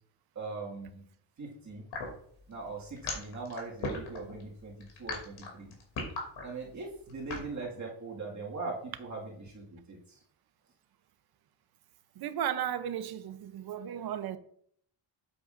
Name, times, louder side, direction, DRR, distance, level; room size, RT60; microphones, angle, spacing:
voice 1, 0.4-1.0 1.4-1.8 2.5-4.7 5.0-5.7 6.4-10.2, right 3 dB, 40° right, 2.0 m, -40 dB
sound 1, 1.9-7.5, left 3 dB, 85° left, 2.9 m, -37 dB
voice 2, 12.1-14.4, right 10 dB, 55° right, 0.7 m, -35 dB
8.7 x 7.8 x 2.5 m
cardioid pair, 155°, 45 cm